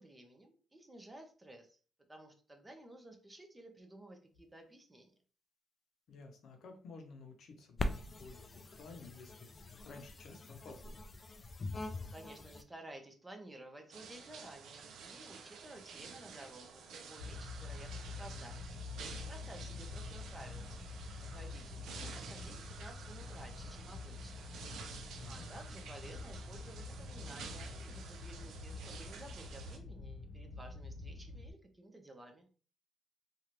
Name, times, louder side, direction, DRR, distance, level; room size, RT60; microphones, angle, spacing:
voice 1, 0.0-1.8 2.1-5.1 11.8-18.7 19.3-20.7 21.2-24.5 25.3-32.5, right 1 dB, 15° right, 4 dB, 0.7 m, -54 dB
voice 2, 6.1-11.0 19.5-19.7 25.2-25.5, left 3 dB, 65° left, 4 dB, 0.7 m, -54 dB
sound 1, 7.8-12.6, left 2 dB, 35° left, 0.4 m, -42 dB
sound 2, 13.9-29.8, right 5 dB, 75° right, 0.6 m, -51 dB
sound 3, 17.2-31.5, left 3 dB, 15° left, 1.0 m, -47 dB
3.0 x 2.5 x 2.9 m, 0.39 s
cardioid pair, 90°, 0 cm